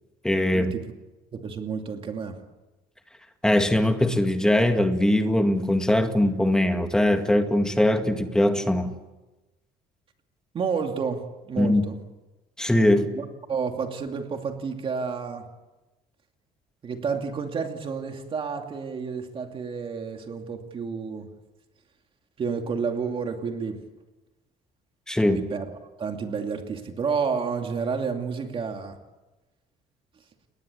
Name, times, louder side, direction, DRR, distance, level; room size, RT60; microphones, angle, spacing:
voice 1, 0.2-0.7 3.4-8.9 11.6-11.9 12.6-13.1 25.1-25.4, left 1 dB, 5° left, 6 dB, 1.9 m, -21 dB
voice 2, 1.3-2.4 10.5-12.0 13.1-15.4 16.8-21.3 22.4-23.8 25.3-25.7 26.0-29.0, right 5 dB, 30° right, 4 dB, 2.6 m, -30 dB
30.0 x 21.0 x 8.4 m, 1.1 s
cardioid pair, 165°, 17 cm